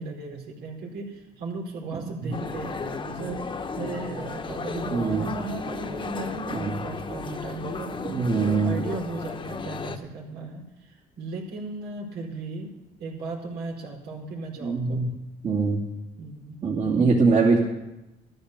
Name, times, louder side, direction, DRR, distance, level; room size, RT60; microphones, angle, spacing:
voice 1, 0.0-15.1 16.2-16.6, right 3 dB, 80° right, 0 dB, 4.5 m, -36 dB
sound 1, 2.3-10.0, left 4 dB, 30° left, 1.1 m, -34 dB
voice 2, 4.9-5.2 6.5-6.8 8.0-8.7 14.6-15.1 15.4-15.8 16.6-17.6, right 4 dB, 45° right, -2 dB, 2.6 m, -22 dB
13.5 x 13.5 x 6.7 m, 0.96 s
cardioid pair, 110°, 17 cm